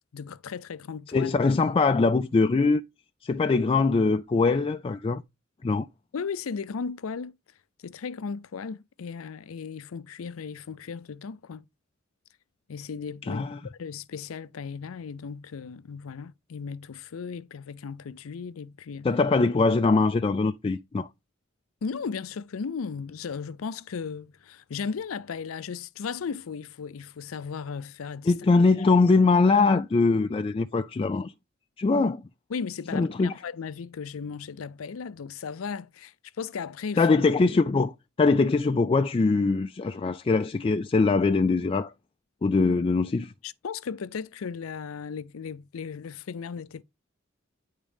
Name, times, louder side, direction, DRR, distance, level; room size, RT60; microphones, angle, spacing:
voice 1, 0.1-1.4 6.1-7.3 7.8-11.7 12.7-13.5 13.8-19.1 21.8-28.5 32.5-37.0 43.4-46.8, left 5 dB, 85° left, 0.5 m, -36 dB
voice 2, 1.1-2.8 3.2-5.2 5.6-5.9 13.2-13.6 19.0-21.1 28.3-31.3 31.8-32.2 32.9-33.3 37.0-41.9 42.4-43.3, left 3 dB, 25° left, 0.3 m, -22 dB
9.9 x 3.7 x 3.5 m
head